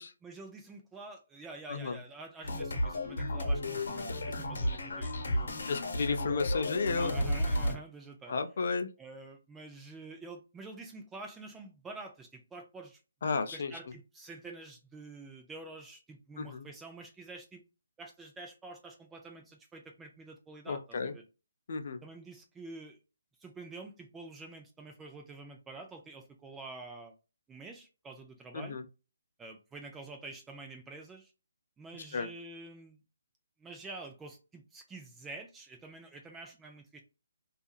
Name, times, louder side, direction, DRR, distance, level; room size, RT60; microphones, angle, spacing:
voice 1, 0.2-5.7 7.0-8.3 9.0-13.0 13.5-17.6 18.0-21.2 22.0-23.0 23.4-27.1 27.5-28.8 29.4-31.3 31.8-33.0 33.6-37.0, right 3 dB, 5° right, 0.3 m, -47 dB
voice 2, 1.7-2.0 5.7-7.1 8.3-8.9 13.2-13.8 16.4-16.7 20.7-21.1 21.7-22.0 28.5-28.8 32.1-32.3, left 4 dB, 50° left, 0.5 m, -33 dB
sound 1, 2.4-7.7, left 1 dB, 65° left, 0.9 m, -33 dB
2.7 x 2.4 x 2.3 m
hypercardioid pair, 170°, 0 cm